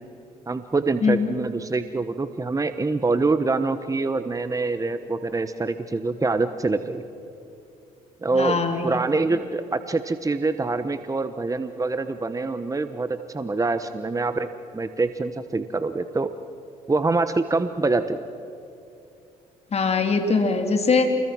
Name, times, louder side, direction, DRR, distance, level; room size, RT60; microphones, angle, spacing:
voice 1, 0.5-7.0 8.2-14.5 14.7-16.3 16.9-18.2, right 3 dB, 20° right, 10 dB, 1.2 m, -25 dB
voice 2, 1.0-1.3 8.3-8.9 19.7-21.1, left 4 dB, 40° left, 5 dB, 3.6 m, -22 dB
28.5 x 21.5 x 6.2 m, 2.8 s
supercardioid pair, 65°, 16 cm